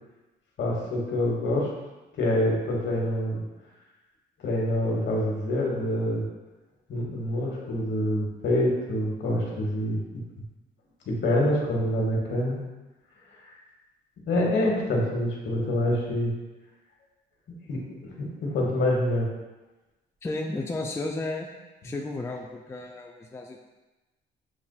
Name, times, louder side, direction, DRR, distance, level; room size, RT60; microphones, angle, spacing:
voice 1, 0.6-1.7 2.2-3.4 4.4-6.2 6.9-10.0 11.1-12.6 14.3-16.3 17.7-19.3, left 1 dB, 65° left, -2 dB, 1.3 m, -26 dB
voice 2, 20.2-21.5 21.8-23.6, left 2 dB, 15° left, 1 dB, 0.4 m, -33 dB
7.1 x 2.5 x 2.3 m, 1.1 s
cardioid pair, 90°, 20 cm